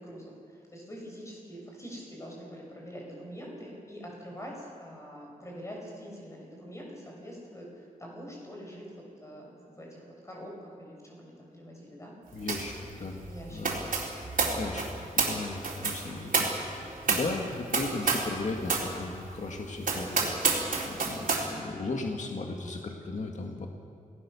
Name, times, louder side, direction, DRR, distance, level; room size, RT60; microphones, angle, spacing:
voice 1, 0.0-12.1 13.3-13.6, equal, 20° left, -1 dB, 6.8 m, -44 dB
voice 2, 12.3-13.2 13.5-13.8 14.2-23.7, left 3 dB, 55° left, 2 dB, 1.9 m, -36 dB
sound 1, 12.5-12.8 13.0-18.4 18.6-18.9 19.3-19.4 19.8-21.5, right 4 dB, 70° right, 4.1 m, -29 dB
28.5 x 18.5 x 7.0 m, 2.3 s
wide cardioid pair, 155°, 15 cm